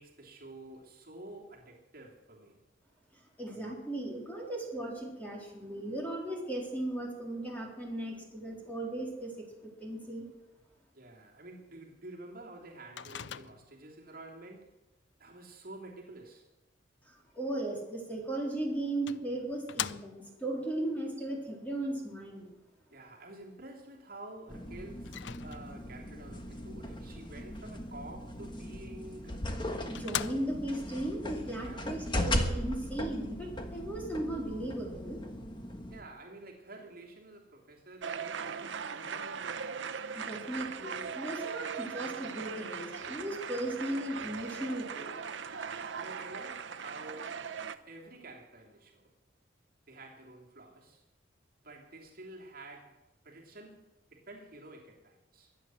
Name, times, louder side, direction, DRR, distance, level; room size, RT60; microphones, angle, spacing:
voice 1, 0.0-2.6 10.9-14.7 15.2-16.5 22.9-29.5 31.6-32.1 35.9-39.6 45.6-47.4 47.8-49.1 49.9-51.0 51.6-55.5, right 2 dB, 50° right, -1 dB, 3.0 m, -50 dB
voice 2, 3.1-10.3 17.1-22.5 29.9-35.2 40.1-45.1, right 1 dB, 10° left, -2 dB, 3.8 m, -37 dB
Microwave oven, 13.0-13.9 18.2-18.3 19.1-20.4 25.0-25.9 29.1-29.2 29.6-29.7 29.9-30.8, left 9 dB, 70° left, 0.5 m, -40 dB
sound 1, 24.5-36.0, left 1 dB, 25° left, 1.4 m, -38 dB
sound 2, 38.0-47.8, right 6 dB, 75° right, 0.8 m, -39 dB
23.0 x 9.4 x 6.3 m, 1.0 s
head